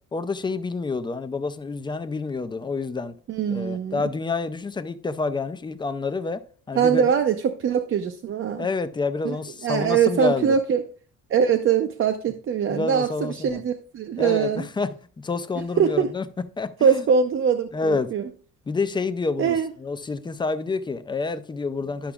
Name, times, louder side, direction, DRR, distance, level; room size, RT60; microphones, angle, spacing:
voice 1, 0.1-3.2 3.5-7.1 8.6-10.6 12.7-13.6 14.2-14.9 15.2-16.3 16.6-17.0 17.7-18.1 18.7-22.1, left 4 dB, 15° left, 0.3 m, -28 dB
voice 2, 3.3-4.0 6.8-8.7 9.2-9.4 9.6-10.8 11.3-14.6 15.8-16.1 16.8-18.2 19.4-19.7, right 7 dB, 45° right, 0.5 m, -22 dB
11.5 x 5.9 x 2.3 m
cardioid pair, 175°, 30 cm